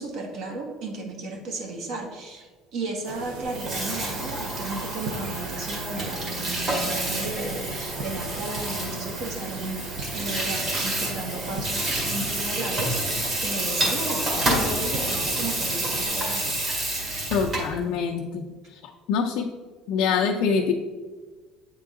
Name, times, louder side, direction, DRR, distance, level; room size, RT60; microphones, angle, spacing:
voice 1, 0.0-9.8 10.1-16.6, right 2 dB, 55° right, 2 dB, 1.3 m, -34 dB
sound 1, 3.0-16.1, right 3 dB, 80° right, 0.8 m, -38 dB
Water tap faucet / Sink (filling or washing), 3.4-17.8, right 1 dB, 30° right, 1.7 m, -29 dB
sound 2, 13.8-15.3 16.0-16.1 16.8-16.9 17.5-17.6, left 2 dB, 10° left, 0.4 m, -40 dB
voice 2, 17.3-18.5 19.1-19.5 19.9-20.7, left 6 dB, 70° left, 1 dB, 0.5 m, -24 dB
8.2 x 3.8 x 3.6 m, 1.4 s
cardioid pair, 150°, 0 cm